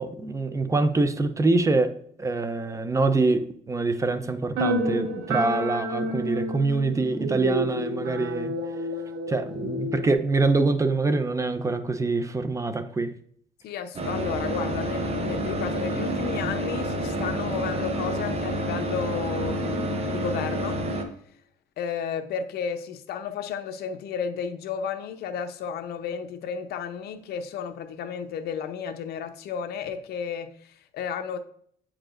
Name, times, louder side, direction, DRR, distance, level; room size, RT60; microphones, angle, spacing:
voice 1, 0.0-1.9 2.2-8.5 9.3-13.1, right 3 dB, 20° right, 0.5 m, -25 dB
sound 1, 4.6-10.1, equal, 80° right, 1.3 m, -30 dB
voice 2, 13.6-20.8 21.8-31.4, left 7 dB, 70° left, 0.7 m, -33 dB
sound 2, 13.9-21.0, right 1 dB, 35° right, 0.9 m, -29 dB
8.6 x 4.8 x 2.5 m
cardioid pair, 110°, 17 cm